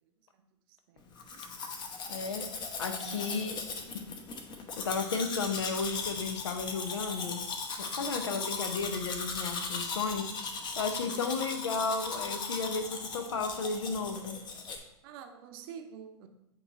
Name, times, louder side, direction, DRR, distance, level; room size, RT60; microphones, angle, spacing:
Domestic sounds home sounds, 1.2-14.8, left 4 dB, 30° left, 0.8 m, -38 dB
voice 1, 2.1-2.5 2.8-3.6 4.8-7.4 7.8-10.3 10.8-14.4, left 4 dB, 80° left, 0.8 m, -33 dB
voice 2, 3.0-3.3 8.0-8.4 11.0-11.3 15.0-16.3, right 7 dB, 55° right, 0.7 m, -48 dB
7.9 x 3.1 x 4.0 m
hypercardioid pair, 100°, 15 cm